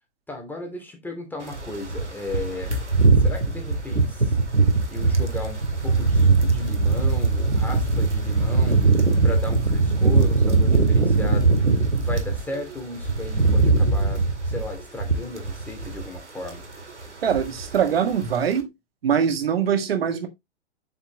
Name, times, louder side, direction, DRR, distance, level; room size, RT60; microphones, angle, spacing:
voice 1, 0.3-2.8 3.2-4.4 4.9-8.8 9.2-11.6 12.0-16.6, left 2 dB, 5° left, 2.6 m, -35 dB
sound 1, 1.5-12.4 12.8-16.2 16.4-16.7 17.0-17.8 18.1-18.3, right 3 dB, 90° right, 2.1 m, -21 dB
voice 2, 13.7-14.1 17.2-18.7 19.0-20.3, right 8 dB, 60° right, 1.8 m, -23 dB
8.1 x 6.4 x 3.0 m
figure-of-eight pair, 115°, 34 cm